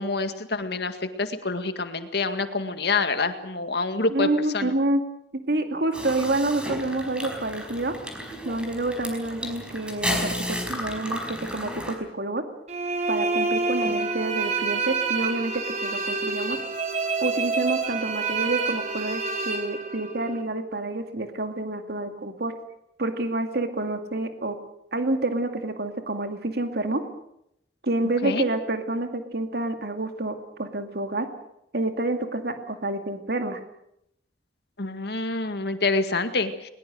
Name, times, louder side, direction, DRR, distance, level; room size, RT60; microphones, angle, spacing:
voice 1, 0.0-4.3 4.5-4.7 13.9-14.0 28.2-28.4 34.8-36.7, left 3 dB, 65° left, 9 dB, 2.0 m, -27 dB
voice 2, 4.1-5.0 5.3-8.0 8.4-12.4 13.1-16.6 17.2-22.5 23.0-24.6 24.9-27.0 27.8-31.3 31.7-33.6, right 2 dB, 65° right, 7 dB, 2.3 m, -28 dB
sound 1, 5.9-11.9, equal, 5° right, 4.9 m, -33 dB
sound 2, 12.7-20.4, right 4 dB, 40° right, 3.1 m, -27 dB
21.5 x 21.5 x 7.9 m, 0.76 s
head